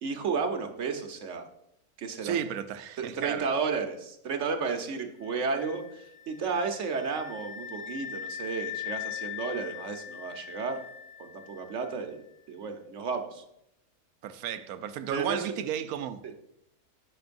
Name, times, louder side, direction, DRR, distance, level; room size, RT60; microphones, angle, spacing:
voice 1, 0.0-1.5 2.0-2.4 3.0-10.8 11.2-13.4 15.1-15.6 16.2-16.3, right 5 dB, 55° right, 1.2 m, -33 dB
voice 2, 2.2-3.5 14.2-16.2, right 9 dB, 80° right, 1.1 m, -33 dB
sound 1, 5.2-12.0, left 11 dB, 55° left, 1.1 m, -41 dB
14.5 x 6.2 x 2.6 m
omnidirectional pair, 1.6 m